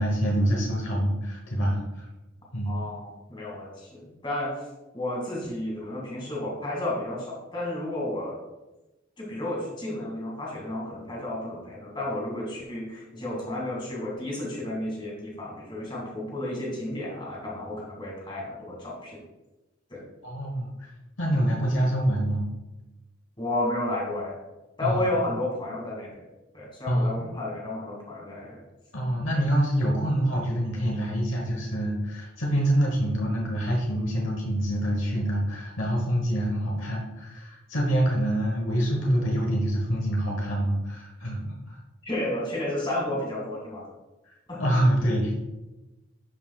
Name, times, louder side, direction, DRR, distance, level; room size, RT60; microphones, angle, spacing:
voice 1, 0.0-2.1 2.5-2.8 20.2-20.9 21.2-22.5 24.8-25.1 26.8-27.3 28.9-41.8 44.6-45.4, right 1 dB, 65° left, -1 dB, 1.2 m, -26 dB
voice 2, 2.6-4.5 4.9-8.4 9.2-19.2 19.9-20.0 23.4-24.4 24.8-26.1 26.5-28.6 29.3-29.4 42.0-43.9 44.5-44.6, left 1 dB, 25° left, -4 dB, 2.2 m, -32 dB
11.5 x 4.8 x 2.4 m, 1.1 s
head